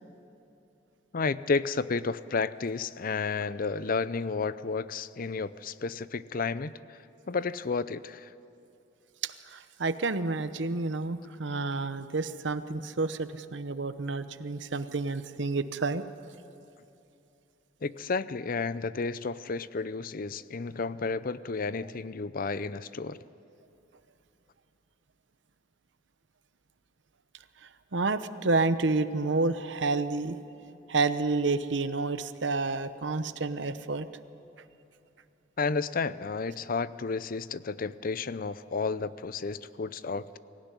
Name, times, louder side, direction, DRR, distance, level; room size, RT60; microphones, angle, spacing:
voice 1, 1.1-7.0 7.3-8.3 17.8-23.2 35.6-40.4, left 4 dB, 50° left, 16 dB, 0.6 m, -32 dB
voice 2, 9.2-16.0 27.9-30.4 30.9-34.1, right 3 dB, 70° right, 12 dB, 0.9 m, -29 dB
24.0 x 16.0 x 9.8 m, 2.7 s
head